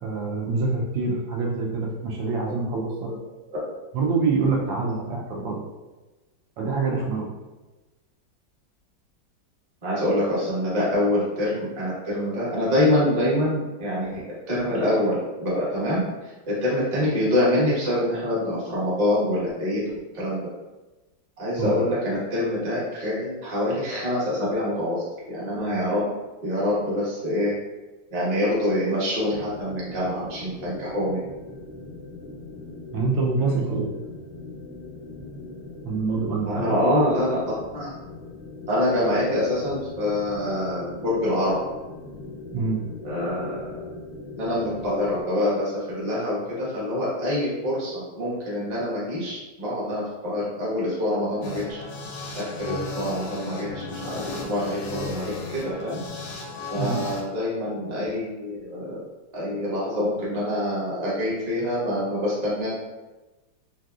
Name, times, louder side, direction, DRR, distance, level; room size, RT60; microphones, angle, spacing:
voice 1, 0.0-2.9 3.9-5.6 6.6-7.3 21.6-21.7 32.9-33.9 35.8-36.7 42.5-42.8 56.7-57.0, right 4 dB, 80° right, -2 dB, 1.3 m, -25 dB
voice 2, 9.8-19.8 20.1-20.5 21.4-26.1 26.4-27.5 28.1-31.2 36.4-37.4 37.7-37.9 38.7-41.5 43.0-43.6 44.4-51.6 52.3-56.0 56.7-59.0 59.3-62.7, left 1 dB, 30° right, -7 dB, 0.8 m, -25 dB
sound 1, 29.3-45.2, left 2 dB, 30° left, 0.5 m, -40 dB
sound 2, 51.4-57.2, left 2 dB, 75° left, 1.1 m, -35 dB
3.3 x 2.7 x 2.3 m, 1.1 s
omnidirectional pair, 2.0 m